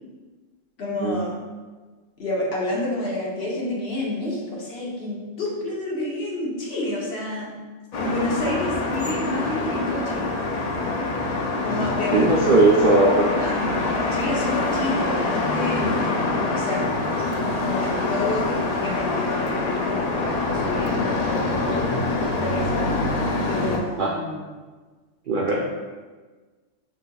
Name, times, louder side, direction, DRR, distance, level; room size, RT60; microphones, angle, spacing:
voice 1, 0.8-1.3 2.2-7.5 8.0-10.3 11.6-12.6 13.2-13.7 14.1-16.1 16.5-16.9 17.6-22.1 22.4-22.9 23.5-24.5, left 1 dB, 55° left, -4 dB, 1.1 m, -29 dB
sound 1, 7.9-23.8, left 3 dB, 90° left, 0.3 m, -25 dB
voice 2, 12.1-13.3 17.4-17.5 24.0-24.1 25.3-25.6, right 2 dB, 65° right, -3 dB, 0.5 m, -18 dB
4.6 x 3.9 x 2.2 m, 1.3 s
omnidirectional pair, 1.3 m